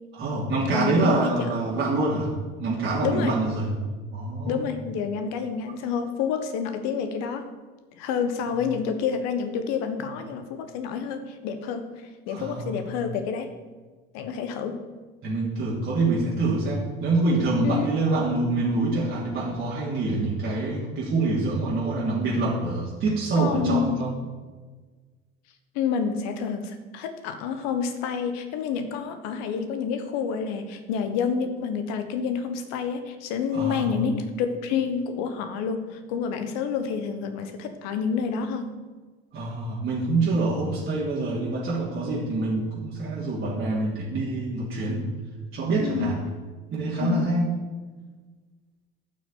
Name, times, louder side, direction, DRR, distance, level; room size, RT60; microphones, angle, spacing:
voice 1, 0.1-2.3 2.6-3.8 4.1-4.6 8.4-8.6 12.3-13.0 15.2-24.1 33.5-33.9 39.3-45.0 45.5-46.2 46.7-47.5, right 2 dB, 40° right, -6 dB, 3.0 m, -26 dB
voice 2, 0.7-1.5 3.0-3.3 4.5-7.5 8.0-11.9 12.3-13.5 14.1-14.8 17.6-17.9 23.3-24.0 25.7-38.7 45.8-46.2 47.0-47.3, left 6 dB, 60° left, 8 dB, 1.5 m, -28 dB
12.0 x 6.2 x 8.5 m, 1.4 s
figure-of-eight pair, 65°, 30 cm